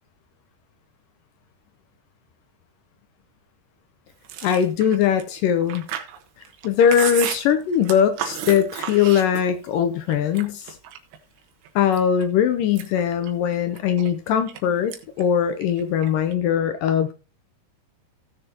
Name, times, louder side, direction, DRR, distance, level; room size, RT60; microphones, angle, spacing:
Chewing mastication, 4.2-9.7 10.1-11.2 11.6-12.2 12.6-14.6 14.9-15.2 15.5-16.3, right 9 dB, 80° right, 3.3 m, -33 dB
voice 1, 4.4-5.8 6.6-10.8 11.8-17.1, left 8 dB, 80° left, 2.0 m, -21 dB
17.0 x 6.9 x 2.8 m
omnidirectional pair, 4.7 m